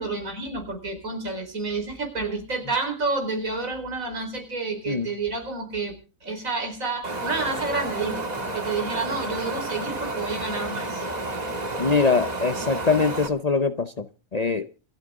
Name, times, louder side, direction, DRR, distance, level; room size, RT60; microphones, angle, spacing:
voice 1, 0.0-5.9 6.2-8.3 8.5-11.0, right 3 dB, 75° right, 4.8 m, -29 dB
Wind, 7.0-13.3, right 2 dB, 30° right, 1.8 m, -31 dB
voice 2, 11.8-14.1 14.3-14.7, left 4 dB, 40° left, 0.6 m, -23 dB
27.5 x 9.2 x 3.7 m
omnidirectional pair, 1.4 m